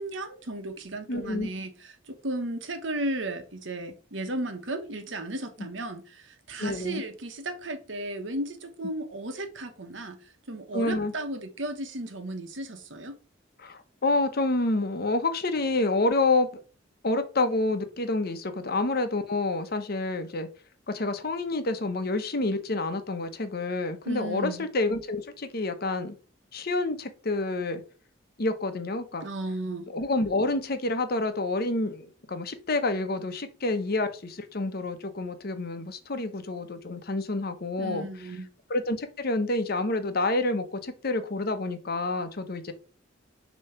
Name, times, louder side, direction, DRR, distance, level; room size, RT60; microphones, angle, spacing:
voice 1, 0.0-13.1 24.0-24.7 29.2-29.9 37.8-38.5, right 1 dB, 70° right, 1.1 m, -35 dB
voice 2, 1.1-1.5 6.6-7.0 10.7-11.1 13.6-16.6 17.0-20.5 20.9-26.2 26.5-27.8 28.4-29.3 29.9-38.1 38.7-42.7, left 2 dB, 50° left, 0.9 m, -28 dB
6.8 x 3.1 x 5.7 m
head